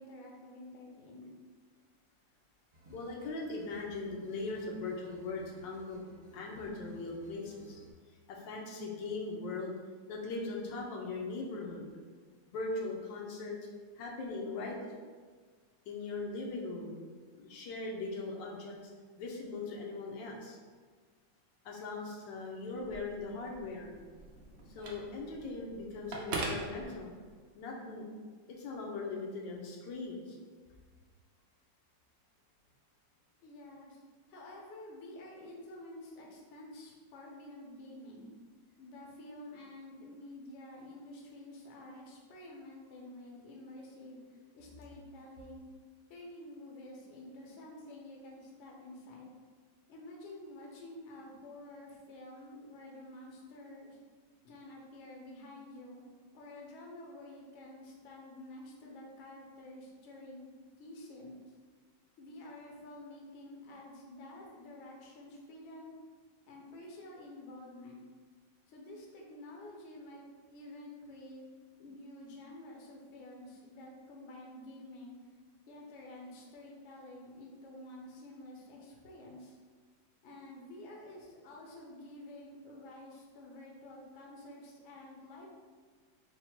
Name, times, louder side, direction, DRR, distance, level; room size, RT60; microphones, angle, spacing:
voice 1, 0.0-1.4 33.4-34.0 34.3-38.3 38.8-45.6 46.1-49.3 49.9-54.0 54.4-56.0 56.3-61.4 62.2-66.0 66.4-68.0 68.7-70.2 70.5-71.5 71.8-75.2 75.7-79.6 80.2-85.5, left 1 dB, 55° left, -1 dB, 0.8 m, -50 dB
sound 1, 2.7-7.9, equal, 45° right, 1.2 m, -57 dB
voice 2, 2.9-6.0 6.3-7.8 8.3-9.8 10.1-11.9 12.5-13.6 14.0-14.9 15.9-17.0 17.4-18.9 19.2-20.6 21.6-23.9 24.7-27.1 27.5-28.1 28.5-30.4, left 3 dB, 80° left, -1 dB, 1.4 m, -40 dB
Telephone, 22.8-27.5, right 2 dB, 85° right, 0.5 m, -42 dB
4.0 x 2.2 x 4.3 m, 1.5 s
omnidirectional pair, 1.9 m